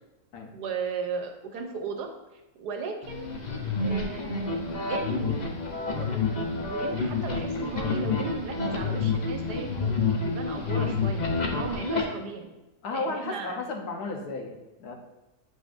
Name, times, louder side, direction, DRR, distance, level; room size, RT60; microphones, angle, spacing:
voice 1, 0.5-2.1 2.6-3.3 3.8-4.6 4.9-5.5 6.0-12.5 12.9-13.6, right 4 dB, 85° right, 4 dB, 1.4 m, -36 dB
sound 1, 3.0-12.0, left 4 dB, 40° left, 0.7 m, -29 dB
voice 2, 12.8-14.9, left 3 dB, 75° left, 3 dB, 1.4 m, -34 dB
7.6 x 5.3 x 2.6 m, 1.0 s
omnidirectional pair, 1.7 m